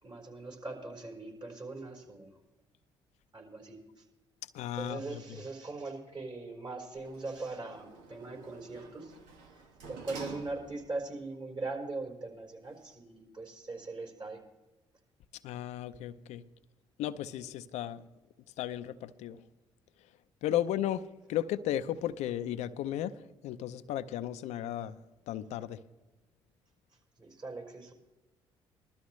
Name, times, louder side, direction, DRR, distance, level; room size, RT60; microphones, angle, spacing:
voice 1, 0.0-2.3 3.3-3.8 4.7-9.1 9.5-9.6 9.9-14.4 27.2-27.9, right 3 dB, 40° right, 4.5 m, -41 dB
voice 2, 4.5-5.2 15.4-16.4 17.0-18.0 18.6-19.4 20.4-21.0 21.3-23.1 23.4-24.9 25.3-25.8, left 12 dB, 75° left, 0.5 m, -34 dB
Sliding door, 6.9-11.1 11.5-11.6, right 5 dB, 90° right, 1.4 m, -48 dB
20.5 x 13.0 x 3.2 m
supercardioid pair, 60°, 12 cm